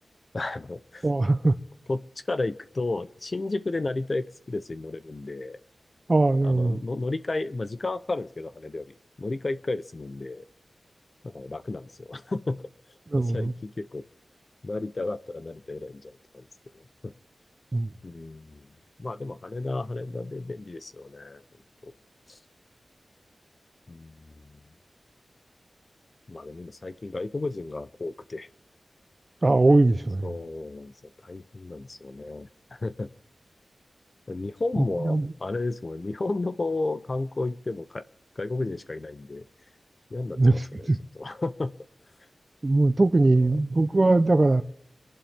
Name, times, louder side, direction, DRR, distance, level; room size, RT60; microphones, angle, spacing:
voice 1, 0.3-1.1 1.9-2.0 2.3-5.6 6.4-10.4 11.2-12.6 13.3-14.0 14.6-16.4 16.7-17.1 18.0-18.7 19.0-21.4 21.8-21.9 22.3-22.4 23.9-24.6 26.3-28.5 30.2-30.9 31.2-33.1 34.3-38.0 38.4-39.4 40.1-40.9 41.1-41.7 43.2-43.5, left 2 dB, 45° left, 0.7 m, -33 dB
voice 2, 1.0-1.5 6.1-6.8 13.1-13.5 17.7-17.9 29.4-30.3 35.0-35.3 40.4-41.0 42.6-44.6, right 2 dB, 40° right, 0.7 m, -21 dB
25.5 x 11.5 x 3.6 m
wide cardioid pair, 65°, 0 cm